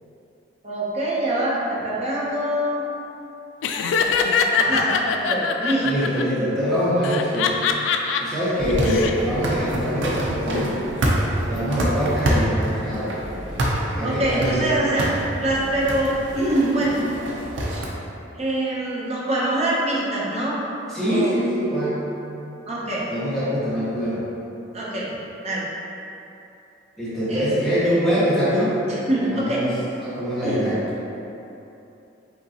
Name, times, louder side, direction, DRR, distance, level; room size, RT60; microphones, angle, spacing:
voice 1, 0.6-2.8 4.6-6.1 14.0-15.1 15.4-17.0 18.3-20.6 21.1-21.3 22.7-23.0 24.7-25.1 25.4-25.6 27.3-27.5 28.9-29.6 30.4-30.7, right 1 dB, 35° right, -6 dB, 0.8 m, -24 dB
Laughter, 3.6-6.2 7.0-8.2 8.7-9.1, left 6 dB, 90° left, 0.3 m, -22 dB
voice 2, 5.8-7.6 8.2-10.8 11.5-13.2 13.9-14.7 20.9-22.0 23.1-24.2 27.0-28.8 29.2-30.8, equal, ahead, -13 dB, 1.3 m, -24 dB
sound 1, 8.6-17.9, right 1 dB, 80° right, 0.6 m, -27 dB
5.2 x 2.9 x 2.8 m, 2.9 s
head